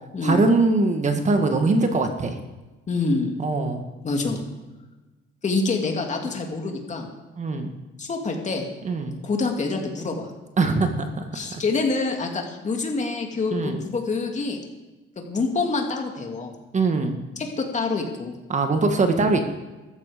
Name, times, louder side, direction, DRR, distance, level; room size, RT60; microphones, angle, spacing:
voice 1, 0.2-2.4 3.4-3.8 7.4-7.7 8.8-9.2 10.6-11.2 11.5-11.6 13.5-13.8 16.7-17.2 18.5-19.4, right 3 dB, 35° right, 5 dB, 1.7 m, -22 dB
voice 2, 2.9-3.3 4.0-4.4 5.4-7.1 8.0-8.7 9.2-10.3 11.3-14.6 15.2-16.5 17.4-18.3, left 3 dB, 35° left, 2 dB, 2.6 m, -26 dB
14.5 x 14.0 x 5.1 m, 1.1 s
cardioid pair, 120°, 21 cm